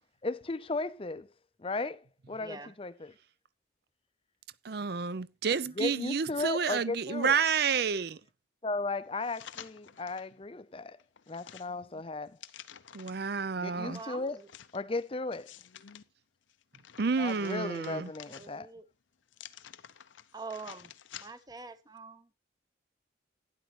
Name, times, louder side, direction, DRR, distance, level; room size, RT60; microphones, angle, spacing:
voice 1, 0.2-1.3 1.6-2.0 2.3-3.1 5.8-7.4 8.6-11.0 11.3-12.4 13.6-14.4 14.7-15.5 17.2-18.7, left 3 dB, 30° left, 0.6 m, -35 dB
voice 2, 2.4-2.7 13.9-14.5 17.7-18.8 20.3-22.3, right 4 dB, 20° right, 0.8 m, -45 dB
voice 3, 4.6-8.2 12.9-14.0 17.0-18.1, right 6 dB, 55° right, 0.5 m, -30 dB
sound 1, 9.2-10.3 10.8-13.3 13.9-16.0 16.5-18.8 19.3-21.6 22.0-22.1, left 9 dB, 85° left, 0.7 m, -51 dB
12.0 x 10.5 x 3.1 m
head